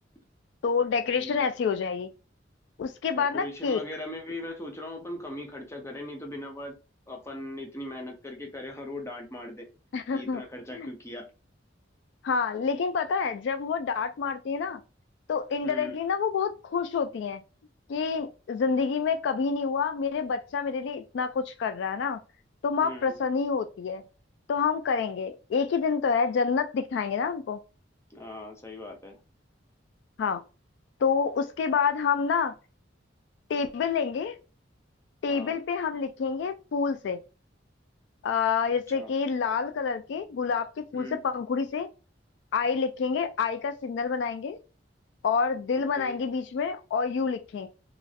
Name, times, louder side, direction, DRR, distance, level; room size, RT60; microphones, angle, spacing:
voice 1, 0.6-2.1 2.8-3.8 9.9-10.4 10.7-10.9 12.2-14.8 15.3-17.4 17.9-22.2 22.6-24.0 24.5-27.6 30.2-30.4 31.0-32.5 33.5-34.3 35.2-37.2 38.2-41.9 42.5-44.6 45.2-47.7, left 5 dB, 65° left, 0.3 m, -28 dB
voice 2, 1.1-1.5 3.1-6.8 7.1-9.7 10.1-11.3 15.6-16.0 22.8-23.2 28.1-29.2 35.3-35.6 38.9-39.1 40.9-41.2 45.8-46.2, left 1 dB, 15° left, 0.7 m, -39 dB
3.0 x 2.5 x 2.4 m
head